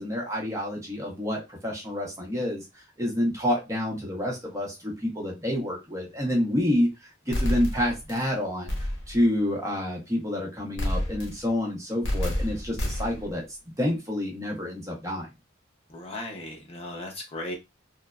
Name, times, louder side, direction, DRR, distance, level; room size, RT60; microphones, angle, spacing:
voice 1, 0.0-6.9 7.3-8.7 9.1-13.4 13.8-15.3, left 1 dB, 15° right, 0.7 m, -28 dB
sound 1, 7.3-8.2 8.7-9.2 10.8-11.5 12.0-13.3, equal, 65° left, 0.8 m, -29 dB
voice 2, 15.9-17.5, left 1 dB, 30° left, 0.6 m, -36 dB
3.1 x 2.0 x 2.3 m
head